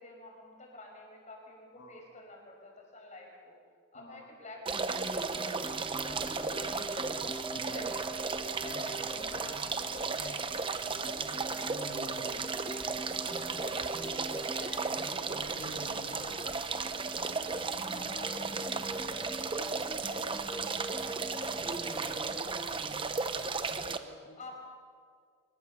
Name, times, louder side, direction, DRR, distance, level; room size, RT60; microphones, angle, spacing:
voice 1, 0.0-3.6 3.9-7.0 7.4-11.3 11.8-15.3 15.9-16.6 17.9-20.2 24.4-24.6, left 1 dB, 30° left, 0 dB, 5.6 m, -50 dB
voice 2, 3.9-4.3 7.5-7.9 11.6-12.5 15.5-16.5 17.8-20.1 23.8-24.5, left 1 dB, 60° left, -2 dB, 2.7 m, -51 dB
sound 1, 4.7-22.4, right 1 dB, ahead, 1.6 m, -44 dB
sound 2, 4.7-24.0, right 4 dB, 25° right, 0.9 m, -35 dB
24.5 x 21.5 x 6.9 m, 2.1 s
head